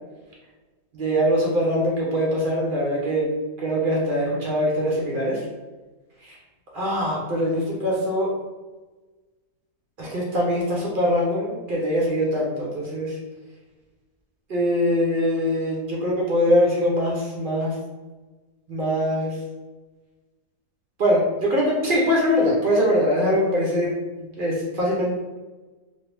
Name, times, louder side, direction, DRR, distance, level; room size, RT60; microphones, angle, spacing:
voice 1, 0.9-3.3 3.6-5.4 6.2-6.4 6.7-8.3 10.0-13.2 14.5-17.8 18.7-19.4 21.0-25.1, equal, 60° right, -4 dB, 0.5 m, -22 dB
2.9 x 2.5 x 3.3 m, 1.2 s
omnidirectional pair, 1.7 m